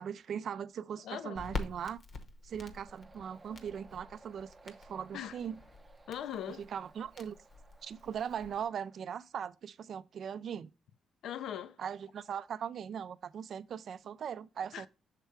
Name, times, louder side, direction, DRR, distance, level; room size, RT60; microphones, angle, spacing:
voice 1, 0.0-2.0 2.4-5.6 6.6-7.4 7.8-10.7 11.8-14.9, right 8 dB, 60° right, 0.3 m, -40 dB
voice 2, 1.0-1.4 5.1-5.4 6.1-6.7 11.2-11.8 14.7-14.9, left 10 dB, 75° left, 0.4 m, -40 dB
Crackle, 1.4-8.7, left 3 dB, 50° left, 0.9 m, -46 dB
sound 1, 2.8-9.0, right 3 dB, 25° right, 0.6 m, -60 dB
6.6 x 3.3 x 4.5 m
cardioid pair, 90°, 0 cm